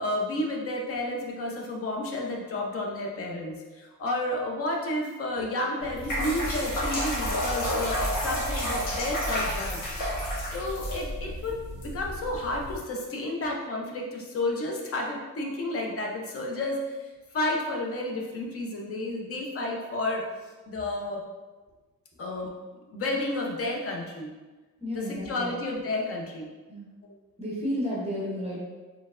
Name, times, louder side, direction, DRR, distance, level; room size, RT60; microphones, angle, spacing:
voice 1, 0.0-9.8 10.4-20.2 20.7-21.2 22.2-22.5 22.9-24.3 24.9-26.5 27.0-27.2, left 1 dB, 45° left, 0 dB, 0.6 m, -31 dB
sound 1, 5.8-12.8, equal, 75° left, 1.2 m, -30 dB
voice 2, 24.8-25.5 26.7-26.9 27.4-28.6, equal, 20° right, -5 dB, 0.6 m, -32 dB
4.3 x 3.3 x 2.4 m, 1.3 s
wide cardioid pair, 170°, 33 cm